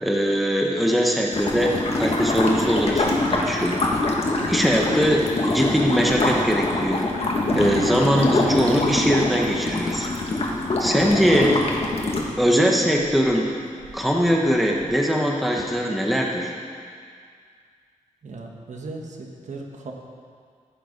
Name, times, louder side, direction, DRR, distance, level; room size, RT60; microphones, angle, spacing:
voice 1, 0.0-3.8 4.5-7.1 7.5-10.1 10.8-11.6 12.4-13.5 13.9-16.5, equal, ahead, -1 dB, 1.0 m, -21 dB
sound 1, 1.3-12.2, left 2 dB, 50° left, 1.4 m, -24 dB
Thunder / Rain, 1.5-15.0, right 5 dB, 85° right, 0.8 m, -39 dB
voice 2, 18.2-19.9, right 3 dB, 65° right, 1 dB, 1.3 m, -37 dB
15.0 x 6.8 x 5.2 m, 2.1 s
wide cardioid pair, 150°, 13 cm